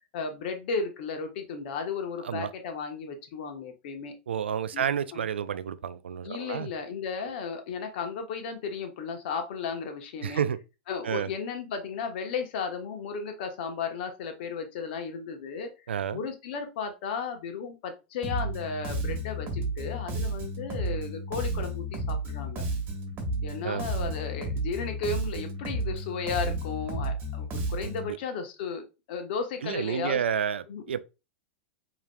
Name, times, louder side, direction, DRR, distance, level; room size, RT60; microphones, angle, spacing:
voice 1, 0.1-4.1 4.7-4.8 5.1-5.3 6.2-10.4 10.9-15.7 16.1-22.6 23.4-30.2 30.7-30.8, left 5 dB, 60° left, 1.0 m, -34 dB
voice 2, 4.3-6.7 10.2-10.6 11.0-11.3 15.9-16.2 23.6-23.9 28.1-28.2 29.6-31.0, right 8 dB, 90° right, 0.3 m, -30 dB
Bass guitar, 18.2-28.1, right 1 dB, 35° right, 1.2 m, -32 dB
4.8 x 2.9 x 2.2 m
hypercardioid pair, 110°, 6 cm